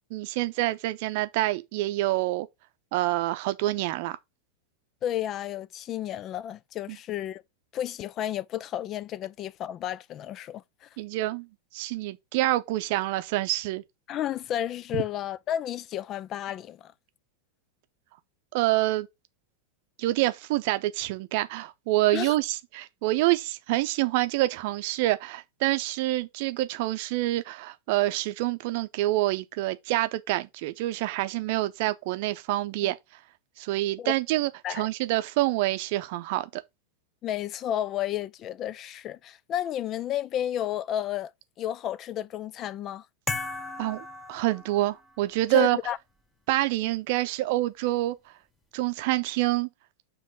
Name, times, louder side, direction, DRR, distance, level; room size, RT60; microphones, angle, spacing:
voice 1, 0.1-2.5 2.9-4.2 6.9-7.0 11.0-11.5 11.7-13.8 14.9-15.0 18.5-19.1 20.0-33.0 33.6-36.5 43.8-45.8 46.5-48.2 48.7-49.7, right 17 dB, 50° right, 0.6 m, -27 dB
voice 2, 5.0-7.4 7.7-10.9 14.1-16.9 22.1-22.4 32.8-32.9 34.0-34.1 34.6-34.9 37.2-41.3 41.6-43.1 45.5-46.0, left 11 dB, 30° left, 0.3 m, -32 dB
sound 1, 43.3-45.2, left 3 dB, 10° left, 0.9 m, -36 dB
7.2 x 3.0 x 5.3 m
figure-of-eight pair, 90°, 0 cm